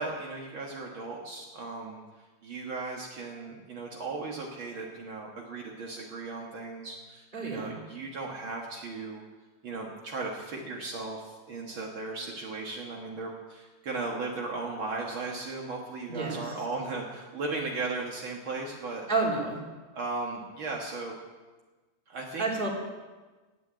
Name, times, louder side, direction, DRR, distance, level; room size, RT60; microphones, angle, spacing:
voice 1, 0.0-9.2 9.6-19.1 19.9-21.1 22.1-22.5, right 3 dB, 70° right, -1 dB, 1.2 m, -36 dB
voice 2, 7.3-7.8 16.1-16.4 19.1-19.6 22.4-22.7, right 3 dB, 15° right, -2 dB, 2.5 m, -29 dB
18.0 x 9.0 x 8.7 m, 1.3 s
omnidirectional pair, 4.9 m